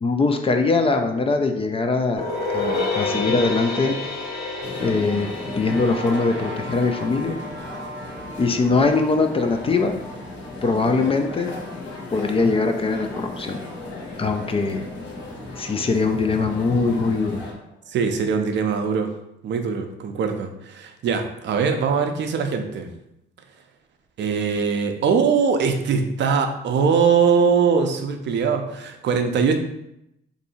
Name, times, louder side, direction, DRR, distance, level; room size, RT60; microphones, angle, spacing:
voice 1, 0.0-4.0 4.8-7.4 8.4-10.0 10.6-11.5 12.1-13.6 14.2-14.8 15.6-17.4, left 3 dB, 30° left, 5 dB, 0.4 m, -22 dB
sound 1, 2.1-7.4, left 3 dB, 50° left, 1.1 m, -29 dB
sound 2, 4.6-17.5, left 2 dB, 70° left, 0.9 m, -36 dB
sound 3, 5.5-18.3, right 1 dB, 90° left, 1.1 m, -42 dB
voice 2, 17.9-19.1 19.4-22.9 24.2-29.6, right 6 dB, 65° right, 6 dB, 0.5 m, -21 dB
2.6 x 2.6 x 4.1 m, 0.82 s
cardioid pair, 90°, 20 cm